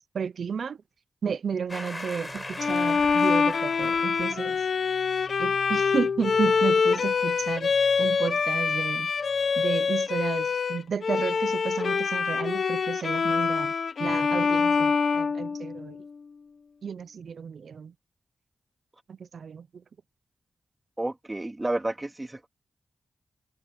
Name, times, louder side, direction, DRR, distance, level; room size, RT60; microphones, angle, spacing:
voice 1, 0.1-0.8 1.2-4.7 5.4-9.1 9.6-13.7 14.0-16.0 16.8-17.9 19.1-19.8, right 6 dB, 75° right, 0.6 m, -32 dB
sound 1, 1.7-4.6, left 2 dB, 20° left, 7.3 m, -40 dB
sound 2, 2.3-9.8, right 4 dB, 50° right, 3.9 m, -51 dB
Bowed string instrument, 2.6-16.0, left 5 dB, 70° left, 1.3 m, -25 dB
voice 2, 21.0-22.5, right 2 dB, 20° right, 3.2 m, -31 dB
cardioid pair, 70°, 0 cm